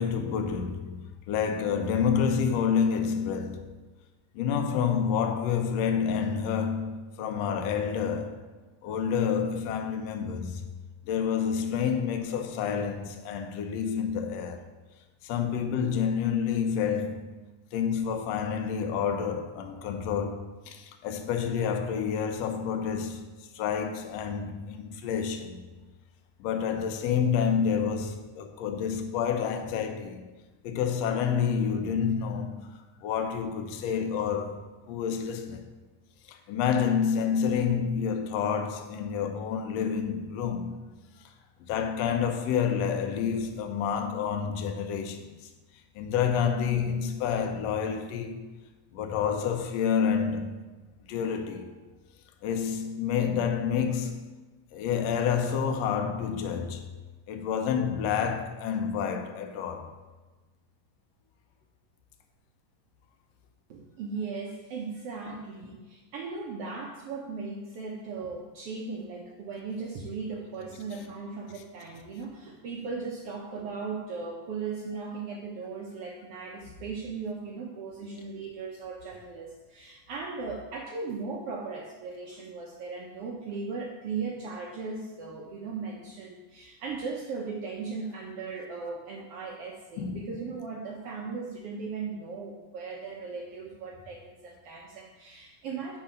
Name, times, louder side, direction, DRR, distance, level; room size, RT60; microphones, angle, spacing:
voice 1, 0.0-3.7 4.3-8.4 8.8-10.6 11.1-14.6 15.2-17.3 17.7-25.6 26.4-30.3 30.6-32.7 33.0-34.6 34.9-35.7 36.3-40.9 41.6-45.3 45.9-48.5 48.9-50.6 51.1-51.7 52.4-54.3 54.7-56.9 57.3-59.9 90.0-90.3, left 7 dB, 75° left, 1.5 m, -29 dB
voice 2, 63.7-96.0, right 4 dB, 85° right, 1.3 m, -37 dB
7.9 x 4.9 x 5.1 m
omnidirectional pair, 3.7 m